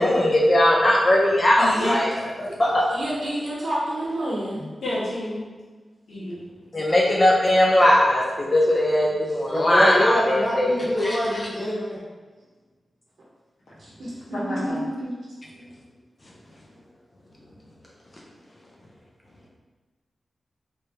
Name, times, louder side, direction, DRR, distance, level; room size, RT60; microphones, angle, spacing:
voice 1, 0.0-2.1 2.4-2.9 6.7-10.7 11.0-11.2, left 1 dB, 35° left, -2 dB, 0.6 m, -19 dB
voice 2, 1.6-2.0 4.5-5.5 6.1-6.4 14.3-14.8, left 1 dB, 90° left, -7 dB, 1.3 m, -29 dB
voice 3, 2.9-4.6 13.8-14.7 15.0-15.1 15.6-15.7, right 1 dB, 75° right, -6 dB, 0.8 m, -29 dB
voice 4, 9.5-12.0, equal, 15° left, -7 dB, 1.1 m, -24 dB
3.4 x 3.3 x 2.8 m, 1.3 s
wide cardioid pair, 105°, 0 cm